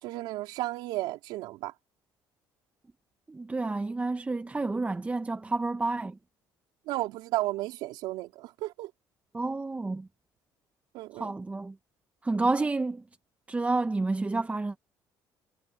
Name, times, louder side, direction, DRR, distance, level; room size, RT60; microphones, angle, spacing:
voice 1, 0.0-1.7 6.9-8.9 10.9-11.3, right 17 dB, 85° right, 3.8 m, -33 dB
voice 2, 3.3-6.2 9.3-10.1 11.1-11.7 12.2-13.0 13.5-14.8, right 3 dB, 15° right, 0.8 m, -29 dB
cardioid pair, 90°, 8 cm